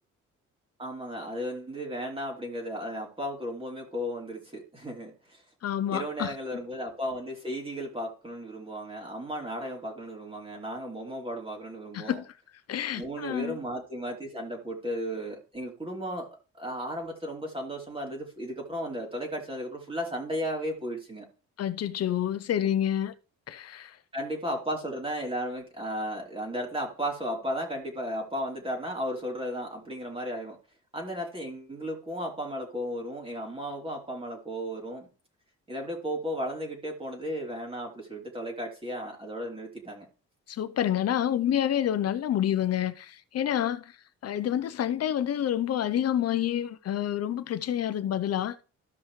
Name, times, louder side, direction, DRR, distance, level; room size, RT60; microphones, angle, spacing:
voice 1, 0.8-5.4 5.9-12.2 13.0-16.3 16.6-21.3 24.1-30.6 30.9-35.1 35.7-40.0, equal, 20° right, 3.0 m, -35 dB
voice 2, 5.6-6.3 11.9-12.2 12.7-13.6 21.6-23.1 23.5-24.0 40.5-43.9 44.2-48.6, left 10 dB, 55° left, 0.8 m, -28 dB
14.0 x 5.5 x 3.2 m
cardioid pair, 90°, 30 cm